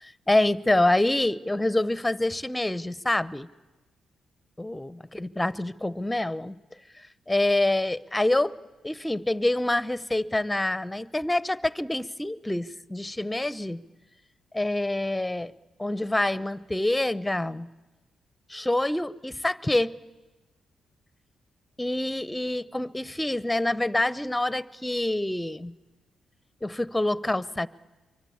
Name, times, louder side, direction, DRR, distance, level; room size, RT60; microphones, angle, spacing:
voice 1, 0.0-3.5 4.6-6.5 7.3-8.5 8.8-13.8 14.5-15.5 15.8-17.7 18.5-19.9 21.8-25.7 26.6-27.7, left 1 dB, 10° left, 18 dB, 0.9 m, -26 dB
25.0 x 24.0 x 8.7 m, 1.2 s
hypercardioid pair, 45°, 0 cm